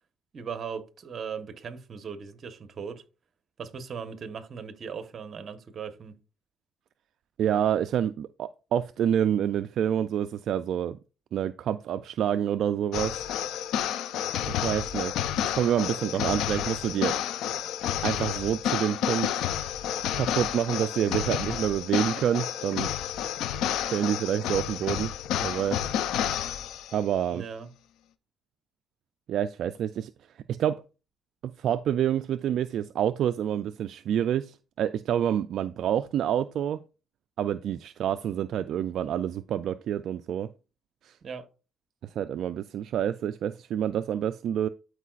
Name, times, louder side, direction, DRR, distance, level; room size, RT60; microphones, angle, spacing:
voice 1, 0.3-3.0 3.6-6.2 27.3-27.7 41.2-41.5, right 6 dB, 50° right, 1.1 m, -38 dB
voice 2, 7.4-11.0 11.3-13.2 14.5-15.2 15.4-17.1 18.0-19.5 20.1-22.9 23.8-25.1 25.4-25.8 26.9-27.4 29.3-30.1 30.5-30.8 31.4-36.8 37.4-40.5 41.0-41.2 42.0-44.7, right 10 dB, 75° right, 0.3 m, -28 dB
sound 1, 12.9-27.0, left 10 dB, 90° left, 0.5 m, -30 dB
12.5 x 4.6 x 2.4 m
cardioid pair, 90°, 0 cm